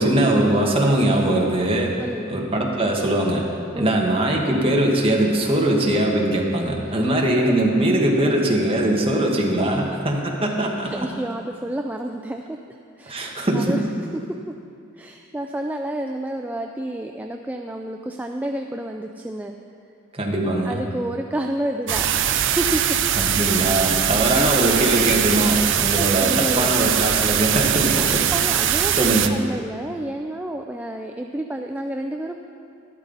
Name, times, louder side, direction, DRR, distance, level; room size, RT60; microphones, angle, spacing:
voice 1, 0.0-1.9 2.3-3.4 3.8-10.9 13.1-13.8 20.1-20.8 23.2-28.3 28.9-29.3, right 1 dB, 25° right, -1 dB, 1.4 m, -21 dB
voice 2, 2.0-2.4 3.7-3.9 5.4-5.5 6.9-7.0 10.8-13.8 14.3-14.5 14.9-19.6 20.6-22.1 22.4-23.1 24.3-24.5 26.0-26.7 28.0-28.1 28.3-32.4, right 1 dB, 5° right, 3 dB, 0.3 m, -30 dB
sound 1, 21.9-29.3, right 10 dB, 60° right, 0.5 m, -21 dB
12.0 x 12.0 x 4.0 m, 2.5 s
head